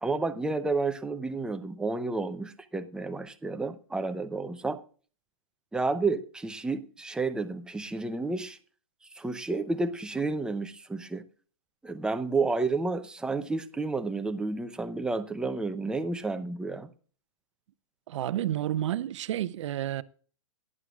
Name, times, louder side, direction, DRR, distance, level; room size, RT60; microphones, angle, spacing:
voice 1, 0.0-4.8 5.7-8.6 9.1-11.2 11.8-16.9, right 3 dB, 5° right, 0.7 m, -31 dB
voice 2, 18.1-20.0, right 12 dB, 60° right, 0.6 m, -30 dB
17.5 x 11.0 x 2.4 m
hypercardioid pair, 130°, 17 cm